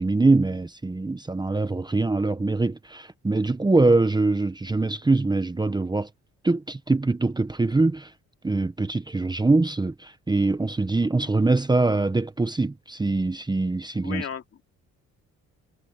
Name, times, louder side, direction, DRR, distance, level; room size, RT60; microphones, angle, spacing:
voice 1, 0.0-6.1 6.4-8.1 8.4-14.2, right 3 dB, 15° right, 1.0 m, -23 dB
voice 2, 14.0-14.6, left 8 dB, 50° left, 2.9 m, -35 dB
cardioid pair, 90°, 30 cm